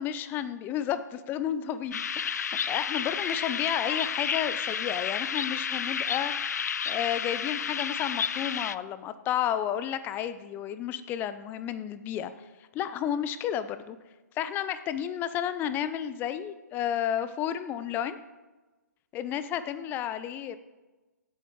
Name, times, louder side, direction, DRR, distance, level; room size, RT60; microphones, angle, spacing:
voice 1, 0.0-12.3 12.7-14.0 14.4-18.2 19.1-20.6, left 10 dB, 20° left, 13 dB, 0.6 m, -32 dB
sound 1, 1.9-8.7, left 7 dB, 65° left, 0.5 m, -31 dB
16.5 x 8.1 x 4.7 m, 1.2 s
figure-of-eight pair, 130°, 10 cm